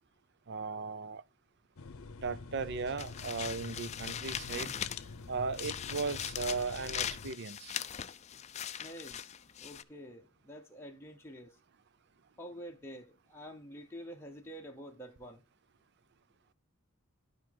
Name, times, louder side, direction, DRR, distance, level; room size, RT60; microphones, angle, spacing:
voice 1, 0.5-1.2 2.2-4.8 5.3-7.8, right 4 dB, 55° right, 0.5 m, -37 dB
sound 1, 1.8-7.3, left 4 dB, 80° left, 0.7 m, -46 dB
sound 2, 3.0-5.2 5.5-9.8, left 9 dB, 30° left, 0.4 m, -40 dB
voice 2, 8.7-11.6 12.4-15.4, equal, 10° left, 0.9 m, -48 dB
11.5 x 5.1 x 3.8 m
head